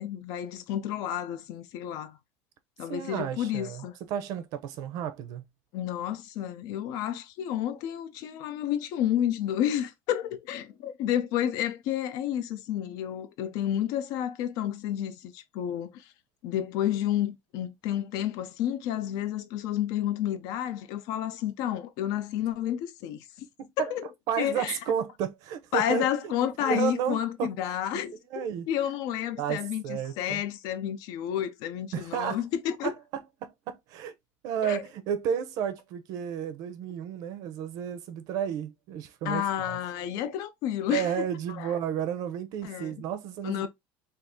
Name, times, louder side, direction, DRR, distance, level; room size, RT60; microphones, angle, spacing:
voice 1, 0.0-2.2 2.8-4.0 5.7-16.0 16.4-23.2 23.8-24.1 24.4-24.8 25.7-32.9 34.6-34.8 39.2-41.2 41.6-41.7 42.6-43.0 43.4-43.7, left 11 dB, 60° left, 0.5 m, -30 dB
voice 2, 2.9-5.4 23.6-23.9 24.3-26.3 26.6-27.5 27.9-28.7 29.4-30.4 31.9-32.4 32.8-32.9 33.4-34.1 34.4-39.8 40.9-43.7, right 8 dB, 55° right, 0.6 m, -32 dB
2.6 x 2.4 x 3.5 m
cardioid pair, 150°, 7 cm